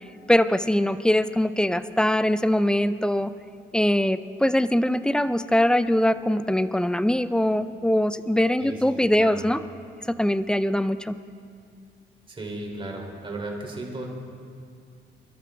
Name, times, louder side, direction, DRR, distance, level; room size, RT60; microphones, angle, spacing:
voice 1, 0.3-3.3 3.7-9.6 10.2-11.1, left 1 dB, 5° left, 13 dB, 0.5 m, -22 dB
voice 2, 8.6-9.5 12.3-14.1, right 2 dB, 25° right, 0 dB, 3.2 m, -35 dB
24.0 x 12.5 x 3.5 m, 2.3 s
cardioid pair, 90°, 20 cm